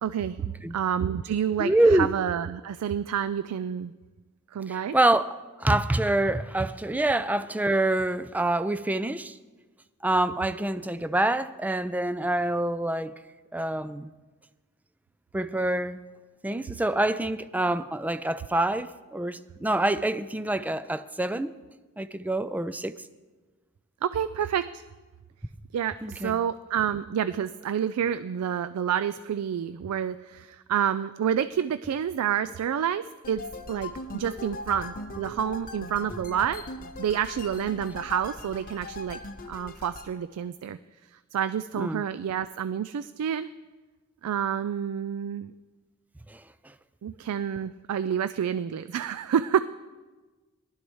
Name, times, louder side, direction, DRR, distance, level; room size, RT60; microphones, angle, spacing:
voice 1, 0.0-0.4 0.7-3.9 4.5-5.0 24.0-24.8 25.7-33.4 33.7-36.6 37.0-39.2 39.5-40.8 41.3-43.5 44.2-45.5 47.0-49.6, right 8 dB, 85° right, 0.3 m, -28 dB
voice 2, 1.6-2.1 4.7-9.4 10.0-13.1 13.5-14.1 15.3-16.0 16.4-21.5 22.0-23.0 26.0-26.4 41.8-42.0 46.3-46.4, right 1 dB, 5° right, 0.3 m, -26 dB
sound 1, 33.2-40.1, left 2 dB, 40° left, 0.8 m, -40 dB
19.0 x 12.0 x 3.1 m
head